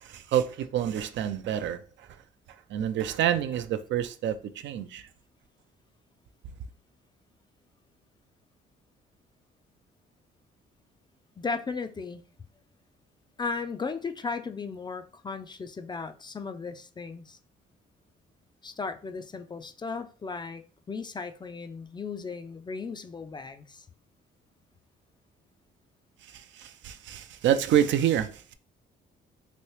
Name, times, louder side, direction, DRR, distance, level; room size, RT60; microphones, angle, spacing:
voice 1, 0.0-1.8 2.7-5.1 26.3-28.5, right 10 dB, 70° right, 0.4 m, -27 dB
voice 2, 11.4-12.2 13.4-17.4 18.6-20.6 20.9-23.9, left 4 dB, 20° left, 0.3 m, -36 dB
3.0 x 2.7 x 3.0 m
cardioid pair, 90°, 20 cm